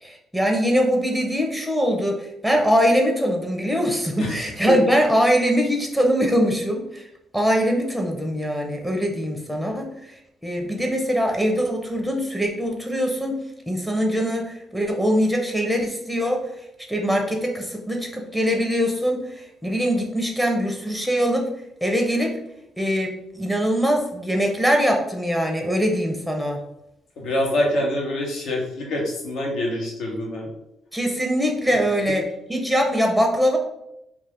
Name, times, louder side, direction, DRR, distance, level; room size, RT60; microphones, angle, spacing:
voice 1, 0.0-7.1 7.3-13.4 13.7-16.4 16.9-21.5 21.8-22.4 22.8-26.6 30.9-32.2 32.5-33.6, equal, ahead, 1 dB, 0.6 m, -22 dB
voice 2, 4.2-4.8 27.2-30.5, left 1 dB, 75° left, -1 dB, 0.8 m, -25 dB
2.4 x 2.3 x 3.4 m, 0.83 s
cardioid pair, 90°, 0 cm